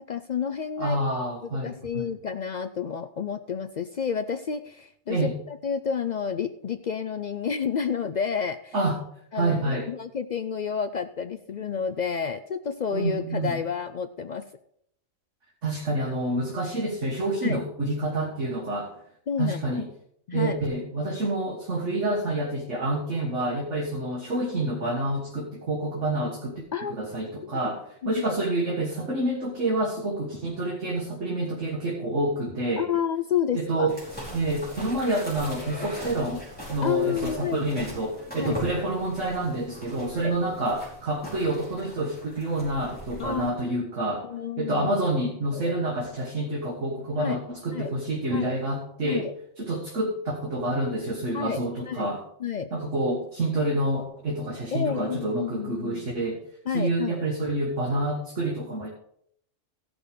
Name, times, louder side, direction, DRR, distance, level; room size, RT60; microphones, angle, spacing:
voice 1, 0.1-1.0 1.6-8.7 9.3-14.4 17.4-17.6 19.3-19.6 20.3-20.6 26.7-27.0 27.4-27.5 28.2-28.4 32.8-33.9 36.8-37.8 38.4-38.6 40.2-40.3 43.2-43.5 44.2-44.9 45.5-45.8 47.2-47.4 47.7-47.9 48.3-48.6 49.0-49.3 51.3-52.1 52.4-52.7 54.7-56.1 56.7-57.2, left 7 dB, 65° left, 10 dB, 0.4 m, -30 dB
voice 2, 0.8-2.1 5.1-5.4 8.7-9.0 9.3-9.9 12.9-13.6 15.6-18.9 19.4-19.9 20.3-32.8 33.5-34.0 34.3-49.3 49.6-52.2 52.7-56.4 56.7-58.9, right 1 dB, 70° right, -2 dB, 2.0 m, -28 dB
sound 1, 33.9-43.5, equal, 5° left, 4.9 m, -40 dB
14.5 x 6.2 x 5.1 m, 0.69 s
omnidirectional pair, 1.3 m